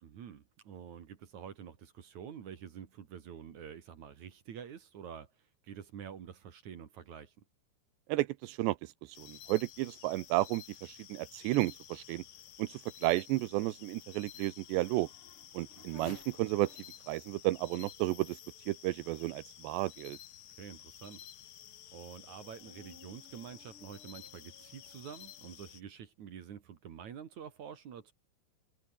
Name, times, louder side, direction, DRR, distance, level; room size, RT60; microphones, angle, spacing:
voice 1, 0.0-7.3 15.7-16.1 20.6-21.3 21.9-28.1, right 8 dB, 50° right, 2.7 m, -48 dB
voice 2, 8.1-8.9 9.2-12.2 12.6-15.1 15.5-16.7 17.1-18.4 18.7-20.2, right 18 dB, 85° right, 3.0 m, -32 dB
sound 1, 9.1-25.8, left 11 dB, 65° left, 1.6 m, -53 dB
Race car auto racing / Accelerating revving vroom, 11.8-19.7 20.3-20.4 21.0-25.8, left 5 dB, 35° left, 3.6 m, -61 dB
omnidirectional pair, 5.0 m